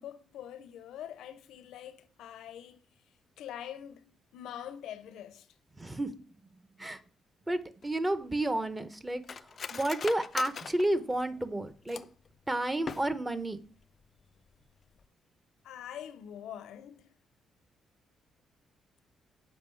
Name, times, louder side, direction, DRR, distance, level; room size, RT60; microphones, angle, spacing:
voice 1, 0.0-2.8 3.4-5.5 15.6-17.1, left 10 dB, 85° left, 0.7 m, -44 dB
voice 2, 5.8-6.1 6.8-7.0 7.5-12.0 12.5-13.6, right 1 dB, 15° right, 0.8 m, -31 dB
Cutlery silverware, 7.8-12.3 12.7-13.4 13.8-13.9 14.2-14.5 14.9-15.1, left 6 dB, 45° left, 0.4 m, -43 dB
7.3 x 4.8 x 4.6 m
cardioid pair, 90°, 0 cm